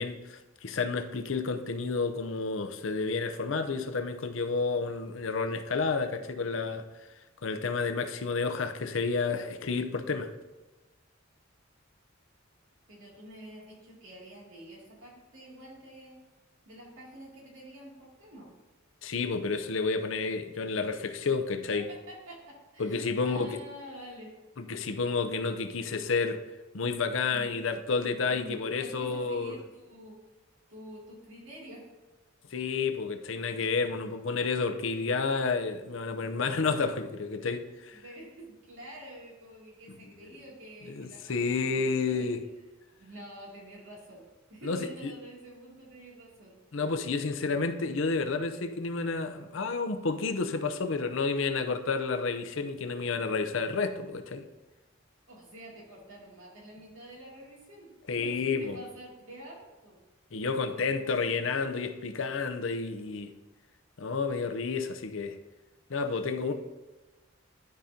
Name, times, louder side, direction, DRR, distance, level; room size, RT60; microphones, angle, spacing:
voice 1, 0.0-6.9 7.4-10.3 19.0-21.9 22.8-23.6 24.6-26.4 26.7-29.6 32.5-38.0 40.2-40.3 40.9-42.4 44.6-45.1 46.7-54.4 58.1-58.8 60.3-63.3 64.0-65.4 65.9-66.5, left 4 dB, 70° left, 0.6 m, -30 dB
voice 2, 12.9-16.2 16.6-18.5 21.7-24.3 27.3-27.7 28.3-30.2 30.7-31.9 32.7-33.0 37.1-37.7 37.9-42.3 43.0-46.5 55.3-60.0 60.5-61.3 66.5-66.6, right 1 dB, 70° right, 2.5 m, -48 dB
12.0 x 5.1 x 2.8 m
head